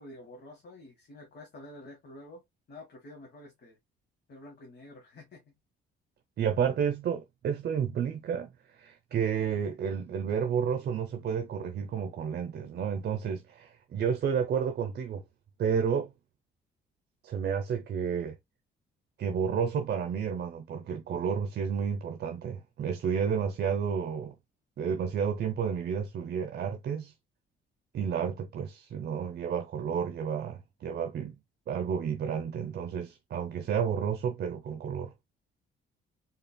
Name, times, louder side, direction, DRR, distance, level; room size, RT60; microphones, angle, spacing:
voice 1, 0.0-2.4 2.7-3.8 4.3-5.5, left 1 dB, 55° left, 1.6 m, -49 dB
voice 2, 6.4-15.2 15.6-16.1 17.2-18.4 19.2-24.3 24.8-27.1 27.9-31.4 31.7-35.1, right 7 dB, 55° right, 0.7 m, -31 dB
4.2 x 3.7 x 2.2 m
cardioid pair, 90°, 20 cm